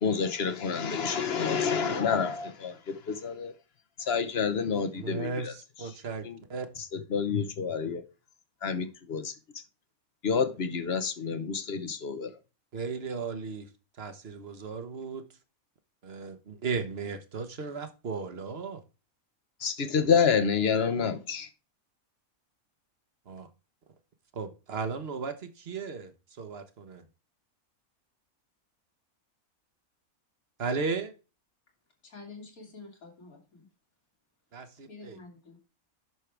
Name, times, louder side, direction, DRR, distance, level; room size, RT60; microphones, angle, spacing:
voice 1, 0.0-3.5 4.0-5.5 6.2-6.4 7.1-8.0 8.6-9.6 10.2-12.3 19.6-21.5, left 6 dB, 50° left, 1.2 m, -28 dB
voice 2, 4.9-6.7 12.7-15.2 16.0-18.8 23.3-23.5 24.3-27.0 30.6-31.1 34.5-35.2, right 5 dB, 45° right, 1.4 m, -36 dB
voice 3, 32.0-33.7 34.9-35.6, left 3 dB, 80° left, 3.3 m, -48 dB
11.0 x 6.4 x 3.4 m
omnidirectional pair, 1.5 m